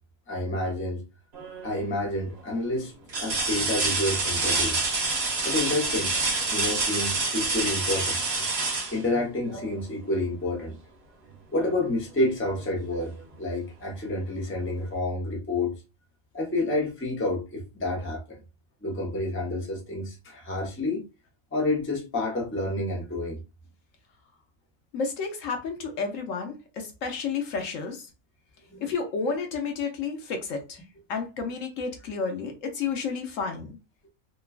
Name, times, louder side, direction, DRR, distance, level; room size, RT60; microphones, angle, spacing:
voice 1, 0.3-1.0 1.6-2.9 3.2-4.7 5.4-8.2 8.9-10.7 11.5-15.7 16.3-18.4 18.8-21.0 21.5-23.4 28.7-28.8, left 2 dB, 15° left, 0.6 m, -29 dB
sound 1, 1.3-1.8 2.4-2.5 3.1-9.8 11.6-11.7 12.2-13.2 14.5-14.6, right 3 dB, 50° right, 1.0 m, -28 dB
voice 2, 24.9-28.1 28.8-30.8 31.1-33.8, left 5 dB, 70° left, 1.0 m, -31 dB
2.9 x 2.3 x 2.3 m
omnidirectional pair, 1.5 m